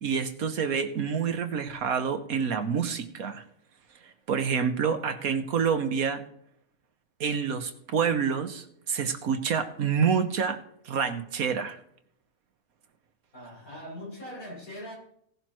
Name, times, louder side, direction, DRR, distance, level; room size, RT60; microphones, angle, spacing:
voice 1, 0.0-3.4 4.0-6.2 7.2-10.6 10.8-11.8, right 6 dB, 75° right, 8 dB, 1.6 m, -28 dB
voice 2, 13.3-14.9, equal, 75° left, -3 dB, 7.3 m, -41 dB
17.5 x 11.5 x 3.1 m, 0.67 s
omnidirectional pair, 1.5 m